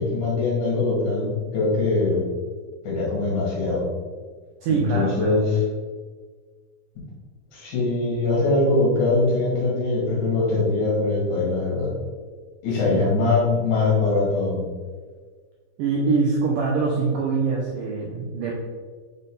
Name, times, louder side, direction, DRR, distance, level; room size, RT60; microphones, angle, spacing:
voice 1, 0.0-2.3 2.8-3.9 4.7-5.6 7.5-11.9 12.6-14.7, left 3 dB, 55° left, -5 dB, 3.0 m, -22 dB
voice 2, 4.6-5.4 12.9-13.1 15.8-18.5, right 4 dB, 90° right, -3 dB, 1.9 m, -24 dB
6.7 x 4.1 x 3.7 m, 1.5 s
omnidirectional pair, 4.8 m